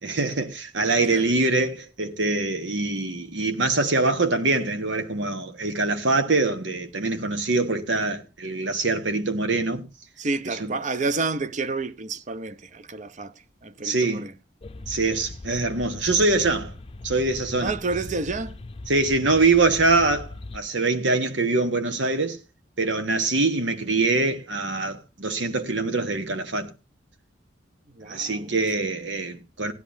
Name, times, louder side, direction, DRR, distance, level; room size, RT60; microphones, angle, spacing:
voice 1, 0.0-9.8 10.5-10.7 13.8-14.3 14.9-16.7 17.0-17.7 18.9-22.4 22.8-26.7 28.1-29.7, right 3 dB, 90° right, 1.3 m, -24 dB
voice 2, 1.0-1.4 10.2-13.3 13.6-14.3 17.6-18.6 27.9-28.5, right 3 dB, 40° right, 0.6 m, -29 dB
sound 1, 14.6-20.6, left 2 dB, 30° left, 0.6 m, -40 dB
17.5 x 11.0 x 2.7 m
head